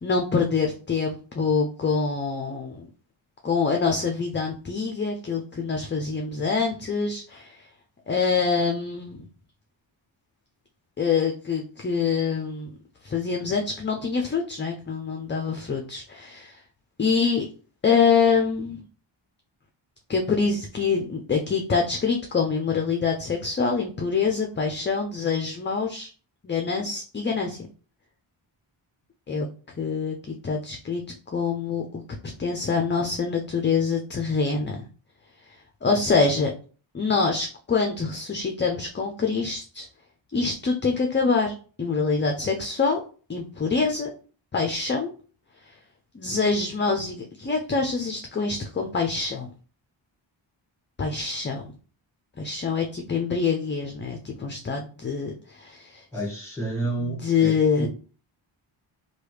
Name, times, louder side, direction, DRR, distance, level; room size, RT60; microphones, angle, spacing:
voice 1, 0.0-2.9 3.4-7.7 8.1-9.2 11.0-12.7 13.0-16.6 17.0-17.5 17.8-18.8 20.1-26.1 26.4-27.6 29.3-29.5 29.8-31.0 31.3-32.0 32.4-34.8 35.8-36.5 36.9-39.9 40.3-43.0 43.3-44.1 44.5-45.1 45.7-45.8 46.1-49.5 51.0-51.7 52.4-56.0 57.0-57.9, left 5 dB, 25° left, 0.4 m, -25 dB
voice 2, 56.1-57.9, right 2 dB, 5° left, 1.6 m, -30 dB
3.1 x 2.3 x 3.2 m
cardioid pair, 65°, 49 cm